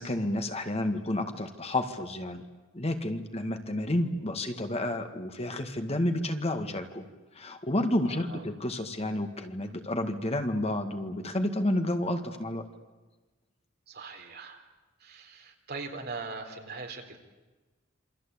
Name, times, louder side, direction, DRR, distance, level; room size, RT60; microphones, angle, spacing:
voice 1, 0.0-2.4 2.7-7.1 7.4-12.6, left 1 dB, 30° left, 7 dB, 2.0 m, -30 dB
voice 2, 8.0-8.4 13.9-14.6 15.0-17.2, right 4 dB, 55° right, 3 dB, 4.2 m, -41 dB
28.0 x 24.5 x 8.6 m, 1.2 s
head